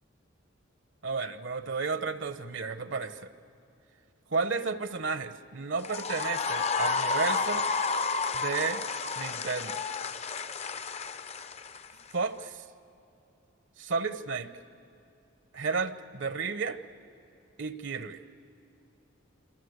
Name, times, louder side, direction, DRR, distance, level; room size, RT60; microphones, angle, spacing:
voice 1, 1.0-3.3 4.3-7.6 8.3-8.8 9.2-9.8 12.1-12.6 13.8-14.5 15.5-16.8 17.6-18.2, right 4 dB, 65° right, 13 dB, 1.0 m, -32 dB
sound 1, 5.8-12.1, left 4 dB, 30° left, 0.6 m, -31 dB
26.5 x 26.5 x 8.1 m, 2.8 s
head